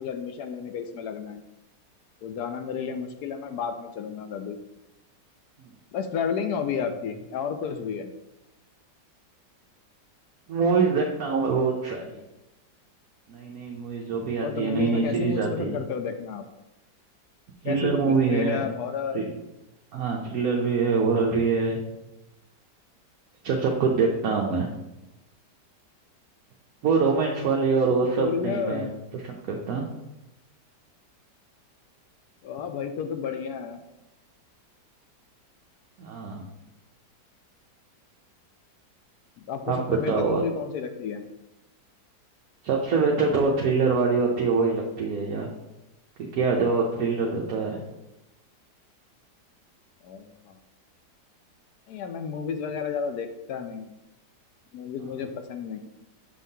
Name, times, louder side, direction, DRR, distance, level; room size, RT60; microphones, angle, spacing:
voice 1, 0.0-1.4 2.2-4.6 5.9-8.1 14.4-16.4 17.6-19.2 27.9-29.0 32.4-33.8 39.4-41.2 50.0-50.6 51.9-53.9 54.7-55.8, left 6 dB, 70° left, 7 dB, 1.0 m, -32 dB
voice 2, 10.5-12.2 13.3-15.8 17.6-18.6 19.1-19.2 19.9-21.8 23.4-24.7 26.8-28.9 29.1-29.9 36.0-36.5 39.7-40.4 42.6-45.5 46.2-47.8, right 4 dB, 65° right, -1 dB, 1.1 m, -24 dB
7.1 x 5.5 x 2.7 m, 0.94 s
omnidirectional pair, 1.9 m